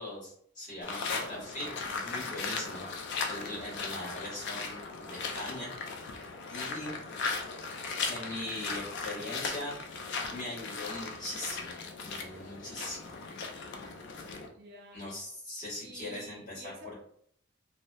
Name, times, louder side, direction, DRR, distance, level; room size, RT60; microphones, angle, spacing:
voice 1, 0.0-2.8 3.3-5.7 6.5-6.9 8.1-9.7 10.3-11.8 12.0-13.1 14.9-16.9, left 1 dB, 35° left, -6 dB, 1.2 m, -40 dB
sound 1, 0.8-14.5, left 4 dB, 50° left, 0.3 m, -37 dB
voice 2, 14.6-15.1 15.8-16.9, right 1 dB, 50° right, 2 dB, 0.4 m, -49 dB
2.7 x 2.1 x 2.2 m, 0.65 s
head